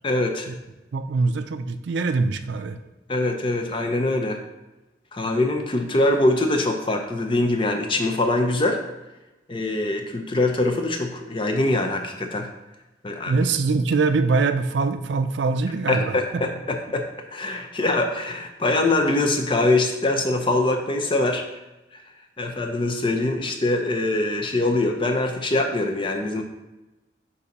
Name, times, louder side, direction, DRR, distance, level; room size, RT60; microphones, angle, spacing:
voice 1, 0.0-0.5 3.1-4.4 5.1-8.8 9.5-12.5 13.0-13.4 15.9-21.4 22.4-26.4, left 2 dB, 25° left, 4 dB, 0.5 m, -23 dB
voice 2, 0.9-2.8 13.3-16.4, right 4 dB, 70° right, 9 dB, 0.4 m, -23 dB
6.8 x 2.7 x 5.2 m, 1.1 s
head